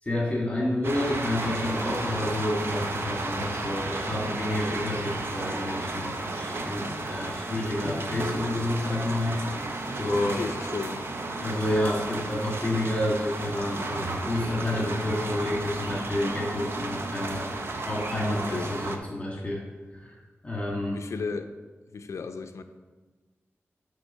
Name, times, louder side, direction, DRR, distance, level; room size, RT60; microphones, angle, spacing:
voice 1, 0.0-9.7 9.9-10.4 11.4-17.4 17.8-19.6 19.9-20.2 20.4-21.0, left 1 dB, 25° left, -4 dB, 1.9 m, -29 dB
sound 1, 0.8-19.0, right 2 dB, 55° right, 0.8 m, -33 dB
voice 2, 10.3-11.1 18.5-18.8 19.4-19.5 20.9-21.5 21.9-22.6, left 4 dB, 85° left, 8 dB, 0.5 m, -34 dB
9.9 x 3.8 x 5.6 m, 1.3 s
wide cardioid pair, 90°, 5 cm